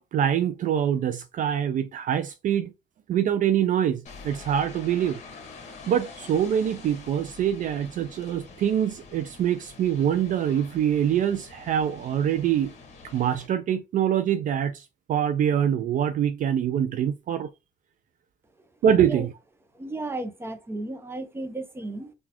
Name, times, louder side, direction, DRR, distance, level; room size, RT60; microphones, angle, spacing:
voice 1, 0.0-2.7 3.1-5.2 5.9-12.7 13.1-17.5 18.8-19.3, right 9 dB, 50° right, 0.4 m, -24 dB
sound 1, 4.1-13.5, left 4 dB, 45° left, 1.3 m, -46 dB
voice 2, 19.7-22.1, right 2 dB, 15° right, 0.7 m, -34 dB
3.9 x 2.4 x 2.8 m
cardioid pair, 110°, 17 cm